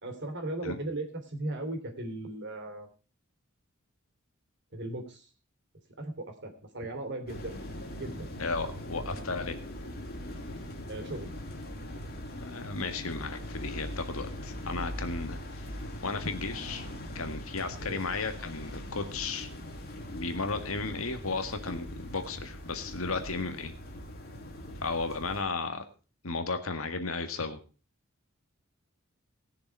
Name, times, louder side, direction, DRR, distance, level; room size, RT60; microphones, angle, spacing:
voice 1, 0.0-2.9 4.7-5.3 6.0-7.6 8.0-8.3 10.9-11.3 17.8-18.0, right 2 dB, 60° right, 5 dB, 3.2 m, -37 dB
sound 1, 7.3-25.4, left 1 dB, 50° left, 2.9 m, -41 dB
voice 2, 8.4-9.6 12.4-15.7 16.0-16.9 17.2-19.5 20.1-23.7 24.8-25.8 26.2-27.6, left 3 dB, 85° left, 7 dB, 1.8 m, -34 dB
19.5 x 6.9 x 4.6 m, 0.34 s
head